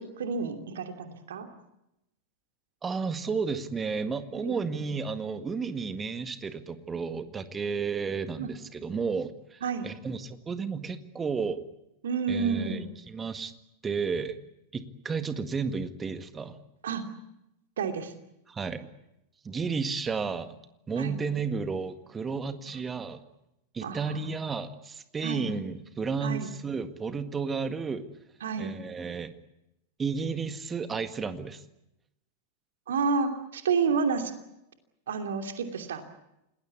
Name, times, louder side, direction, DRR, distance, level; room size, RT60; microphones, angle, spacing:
voice 1, 0.0-1.5 4.4-4.5 8.4-8.5 9.6-9.9 12.0-12.8 16.8-17.0 17.8-18.1 21.0-21.1 23.8-24.2 25.2-25.5 26.2-26.5 28.4-28.7 32.9-34.3 35.1-36.0, right 5 dB, 60° right, 6 dB, 2.8 m, -30 dB
voice 2, 2.8-11.6 12.3-13.5 13.8-14.4 14.7-16.6 18.5-18.9 19.4-20.6 20.9-23.2 23.7-28.1 28.6-29.3 30.0-31.6, right 5 dB, 20° right, 10 dB, 1.8 m, -32 dB
28.5 x 20.0 x 8.4 m, 0.87 s
figure-of-eight pair, 90°, 0 cm